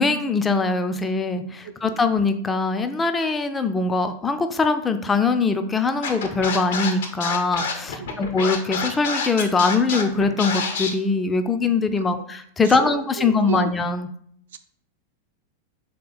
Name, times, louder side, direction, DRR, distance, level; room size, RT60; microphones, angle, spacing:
voice 1, 0.0-14.1, left 4 dB, 15° left, 9 dB, 0.3 m, -22 dB
voice 2, 1.6-2.1 8.0-8.3 12.1-12.2 12.6-13.7 14.5-14.6, right 8 dB, 60° right, 10 dB, 0.3 m, -34 dB
Scratching (performance technique), 6.0-10.9, left 5 dB, 60° left, 0.6 m, -27 dB
3.3 x 2.7 x 4.1 m, 0.64 s
figure-of-eight pair, 90°, 0 cm